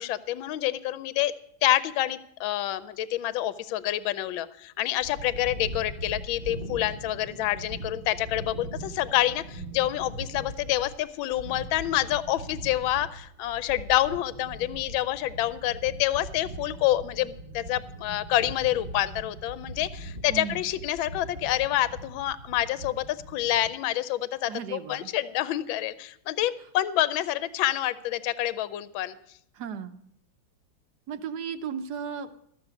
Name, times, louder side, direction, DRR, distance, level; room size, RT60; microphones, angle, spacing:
voice 1, 0.0-1.3 1.6-29.2, left 14 dB, 75° left, 15 dB, 1.4 m, -27 dB
sound 1, 5.0-23.7, right 1 dB, 40° right, 0.9 m, -41 dB
voice 2, 20.3-20.7 24.5-25.1 29.5-30.0 31.1-32.3, right 7 dB, 65° right, 10 dB, 1.2 m, -35 dB
13.5 x 6.7 x 8.2 m, 0.71 s
omnidirectional pair, 2.2 m